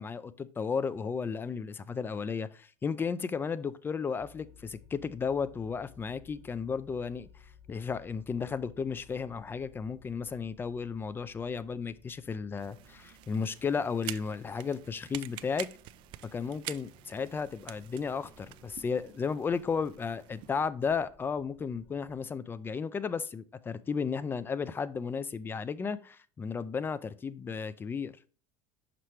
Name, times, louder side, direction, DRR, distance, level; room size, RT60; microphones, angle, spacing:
voice 1, 0.0-7.3 7.7-15.7 16.3-28.1, left 5 dB, 25° left, 0.5 m, -34 dB
sound 1, 4.2-22.2, left 5 dB, ahead, 1.0 m, -59 dB
sound 2, 12.6-20.7, right 16 dB, 60° right, 0.4 m, -47 dB
5.9 x 5.6 x 3.2 m
supercardioid pair, 110°, 9 cm